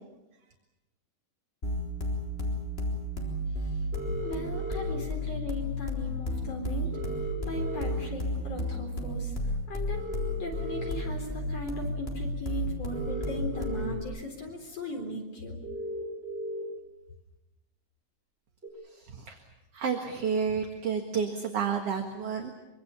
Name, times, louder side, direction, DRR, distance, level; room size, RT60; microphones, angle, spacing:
sound 1, 1.6-14.0, left 1 dB, 15° left, 3.6 m, -32 dB
sound 2, 3.9-4.9 6.9-7.9 9.9-10.9 12.9-13.9 14.5-14.6 15.6-16.6 18.6-18.7, equal, 15° right, 8.1 m, -37 dB
voice 1, 4.2-7.0 7.4-10.1 10.4-15.6, left 2 dB, 45° left, 2 dB, 4.9 m, -38 dB
voice 2, 18.8-19.4 19.7-22.5, right 6 dB, 50° right, 3 dB, 2.4 m, -31 dB
25.0 x 25.0 x 7.0 m, 1.0 s
omnidirectional pair, 4.1 m